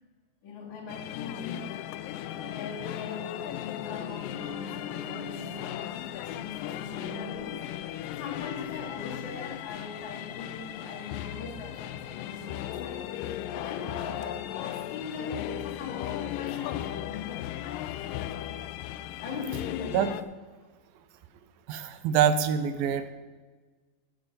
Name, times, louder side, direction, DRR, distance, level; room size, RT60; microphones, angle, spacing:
voice 1, 0.4-1.8 2.2-7.7 8.1-13.1 13.5-17.6 19.2-20.1, left 5 dB, 55° left, -3 dB, 3.7 m, -40 dB
sound 1, 0.9-20.2, left 12 dB, 80° left, 2.0 m, -37 dB
voice 2, 21.7-23.1, right 8 dB, 90° right, 11 dB, 2.5 m, -25 dB
12.5 x 7.9 x 5.4 m, 1.4 s
omnidirectional pair, 4.2 m